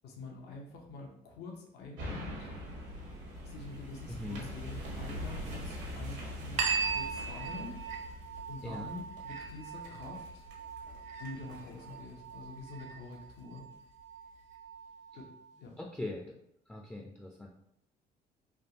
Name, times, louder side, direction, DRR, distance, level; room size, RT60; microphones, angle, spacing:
voice 1, 0.0-2.5 3.4-7.7 8.5-10.4 11.2-13.7 15.1-15.3 15.6-15.8, left 3 dB, 80° left, 0 dB, 0.8 m, -46 dB
sound 1, 2.0-13.4 13.9-14.0, equal, 80° right, 1.1 m, -44 dB
voice 2, 4.1-4.5 8.6-8.9 15.8-16.4 16.7-17.5, left 2 dB, 5° left, -1 dB, 0.4 m, -41 dB
sound 2, 6.6-15.6, right 5 dB, 45° right, 0.5 m, -39 dB
3.4 x 2.4 x 2.8 m, 0.73 s
cardioid pair, 110°, 17 cm